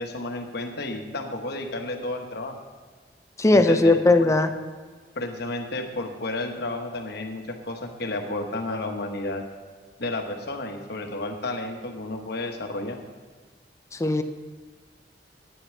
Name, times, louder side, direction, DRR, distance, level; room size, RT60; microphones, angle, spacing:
voice 1, 0.0-2.6 3.5-4.3 5.1-9.4 10.0-13.0, left 2 dB, 65° left, 4 dB, 1.2 m, -32 dB
voice 2, 3.4-4.5 13.9-14.2, left 2 dB, 15° left, 7 dB, 0.6 m, -18 dB
9.3 x 6.6 x 7.4 m, 1.5 s
head